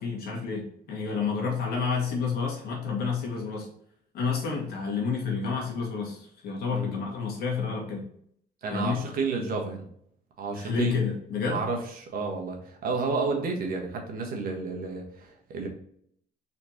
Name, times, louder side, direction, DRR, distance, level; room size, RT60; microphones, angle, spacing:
voice 1, 0.0-3.7 4.1-8.1 8.7-9.0 10.5-11.6, left 5 dB, 70° left, -1 dB, 1.9 m, -29 dB
voice 2, 6.6-7.0 8.6-9.9 10.4-10.9 11.5-15.7, right 4 dB, 60° right, 2 dB, 1.4 m, -31 dB
4.4 x 4.1 x 2.9 m, 0.66 s
cardioid pair, 110°, 17 cm